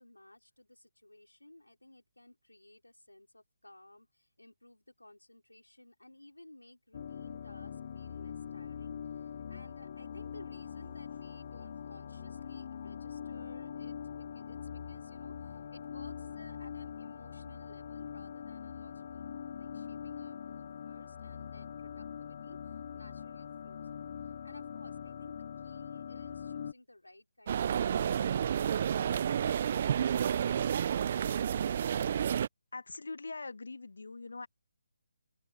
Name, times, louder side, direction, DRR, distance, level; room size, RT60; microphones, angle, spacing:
voice 1, 0.0-29.6, left 1 dB, 90° left, 4.2 m, -57 dB
sound 1, 6.9-26.7, left 8 dB, 45° left, 0.5 m, -43 dB
sound 2, 27.5-32.5, right 8 dB, 40° right, 0.6 m, -30 dB
voice 2, 32.7-34.5, left 3 dB, 70° left, 1.9 m, -42 dB
open air
figure-of-eight pair, 145°, 0 cm